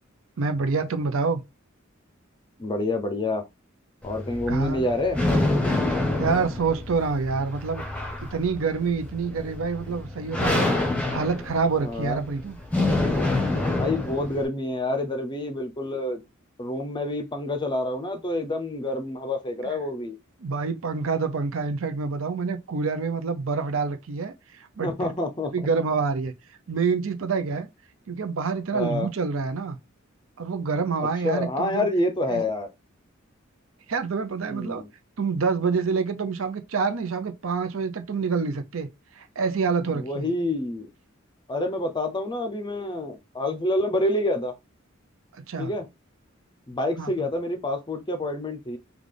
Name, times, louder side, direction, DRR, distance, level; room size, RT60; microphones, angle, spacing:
voice 1, 0.4-1.4 4.5-4.8 6.2-7.8 8.3-12.6 20.4-24.3 24.8-24.9 25.5-26.3 26.7-27.7 28.1-29.8 30.4-31.9 32.3-32.4 33.9-34.8 35.2-38.9 39.2-40.3 45.3-45.7 47.0-47.3, right 4 dB, 70° right, 0.6 m, -27 dB
voice 2, 2.6-3.4 4.0-5.2 11.8-12.2 13.7-16.2 16.6-20.2 24.8-25.5 28.7-29.1 31.2-32.7 34.5-34.9 39.9-40.9 41.5-44.5 45.6-45.9 46.7-48.8, left 1 dB, 20° left, 0.6 m, -27 dB
sound 1, 4.0-14.4, left 2 dB, 5° left, 1.0 m, -27 dB
3.9 x 2.3 x 3.3 m
head